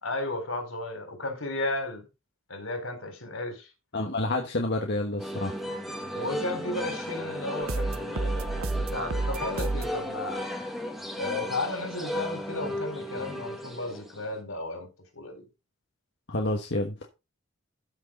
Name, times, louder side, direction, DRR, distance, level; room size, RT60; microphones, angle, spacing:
voice 1, 0.0-2.1 2.5-3.7 6.1-10.5 11.2-14.9 15.1-15.4, left 2 dB, 75° left, 4.5 m, -34 dB
voice 2, 3.9-5.5 16.3-16.9, left 2 dB, 55° left, 1.4 m, -28 dB
sound 1, 5.2-14.4, left 1 dB, ahead, 1.6 m, -35 dB
sound 2, 7.6-10.0, right 3 dB, 85° right, 0.8 m, -30 dB
13.0 x 6.5 x 3.8 m
head